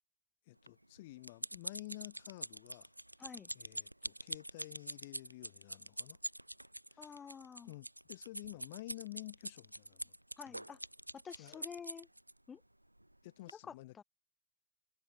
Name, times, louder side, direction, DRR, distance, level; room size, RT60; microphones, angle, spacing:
voice 1, 0.5-2.9 3.5-6.2 6.9-7.1 7.6-10.1 10.4-10.7 11.4-11.6 13.2-14.0, left 18 dB, 50° left, 4.4 m, -51 dB
sound 1, 0.7-12.3 13.0-13.2 13.5-13.6, right 1 dB, 85° right, 1.8 m, -45 dB
voice 2, 3.2-3.5 7.0-7.7 10.4-10.8 11.1-12.1 12.5-12.6 13.6-14.0, left 7 dB, 20° left, 2.6 m, -49 dB
figure-of-eight pair, 90°, 0 cm